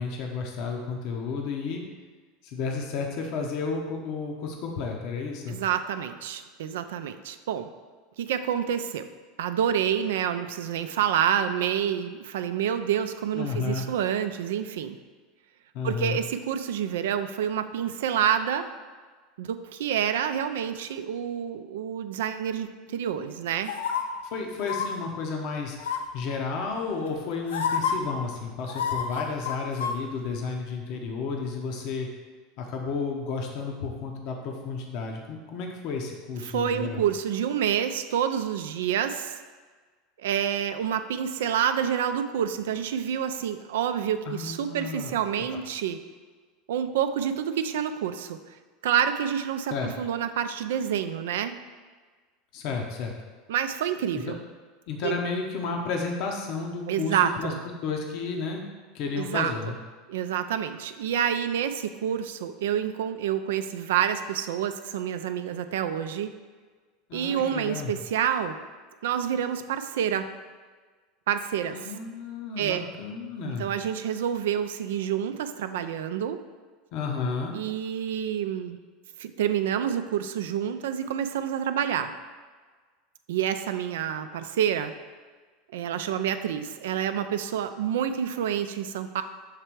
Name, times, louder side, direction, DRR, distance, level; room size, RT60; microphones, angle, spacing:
voice 1, 0.0-1.8 2.4-5.6 13.3-13.8 15.7-16.2 24.3-25.8 26.1-32.1 32.6-37.0 44.3-45.1 45.5-45.6 49.7-49.9 52.5-53.1 54.3-54.4 54.9-57.5 57.8-58.6 58.9-59.8 67.1-67.9 71.7-73.7 76.9-77.5, left 4 dB, 55° left, 1 dB, 0.8 m, -32 dB
voice 2, 5.5-7.7 8.2-9.1 9.4-15.0 15.8-18.7 19.4-23.7 36.4-39.4 40.2-46.0 46.7-48.4 48.8-51.6 53.5-54.4 55.0-55.2 56.9-57.6 59.2-59.5 60.1-66.3 67.1-68.6 69.0-70.2 71.3-71.9 72.6-72.9 73.4-76.4 77.5-78.8 79.2-82.1 83.3-84.9 85.7-89.2, right 9 dB, 75° right, 9 dB, 0.4 m, -28 dB
sound 1, 23.7-24.0 24.6-24.9 25.8-26.2 27.1-27.2 27.5-27.9 28.7-30.0 30.3-30.4, left 7 dB, 75° left, 0.5 m, -28 dB
6.6 x 3.3 x 4.6 m, 1.4 s
hypercardioid pair, 85°, 0 cm